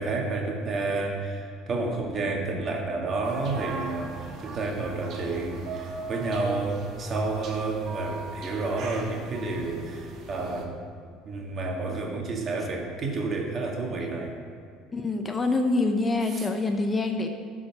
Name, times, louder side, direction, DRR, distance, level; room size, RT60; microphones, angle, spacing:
voice 1, 0.0-10.7 11.3-14.4 16.3-16.5, right 3 dB, 40° right, 0 dB, 2.0 m, -30 dB
sound 1, 3.2-10.6, right 3 dB, 55° right, 1.5 m, -40 dB
voice 2, 14.9-17.3, left 2 dB, 25° left, 5 dB, 0.8 m, -26 dB
12.0 x 4.9 x 6.0 m, 2.3 s
supercardioid pair, 90°, 0 cm